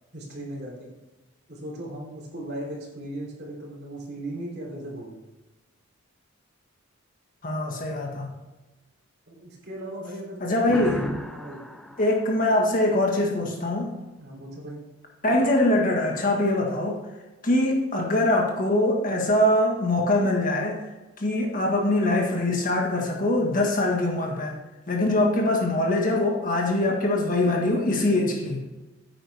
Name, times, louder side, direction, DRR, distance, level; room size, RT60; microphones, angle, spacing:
voice 1, 0.1-0.9 1.5-5.2 9.3-11.6 14.2-14.8, right 1 dB, 50° right, -2 dB, 3.2 m, -37 dB
voice 2, 7.4-8.3 10.4-11.0 12.0-13.9 15.2-17.0 17.4-20.8 21.2-24.6 24.9-28.7, left 1 dB, 40° left, 1 dB, 1.6 m, -23 dB
sound 1, 10.7-13.4, left 1 dB, ahead, 0.5 m, -36 dB
9.8 x 8.9 x 3.5 m, 1.1 s
head